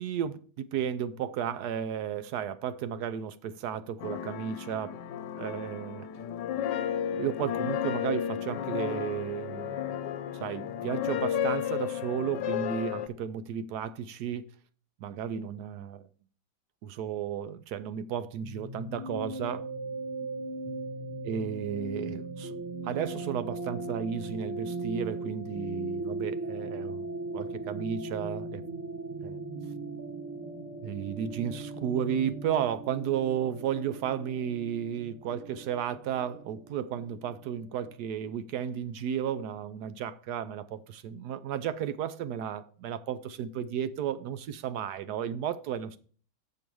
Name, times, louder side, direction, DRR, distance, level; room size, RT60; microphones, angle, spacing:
voice 1, 0.0-4.9 5.4-6.1 7.1-9.9 10.4-14.4 15.0-16.1 16.8-19.7 21.2-22.5 22.8-27.1 27.3-28.8 29.2-29.4 30.8-46.0, right 9 dB, 70° right, 1.0 m, -33 dB
sound 1, 4.0-13.1, left 9 dB, 70° left, 1.3 m, -33 dB
sound 2, 18.4-37.9, right 2 dB, 15° right, 1.0 m, -38 dB
7.6 x 6.8 x 4.6 m
omnidirectional pair, 2.1 m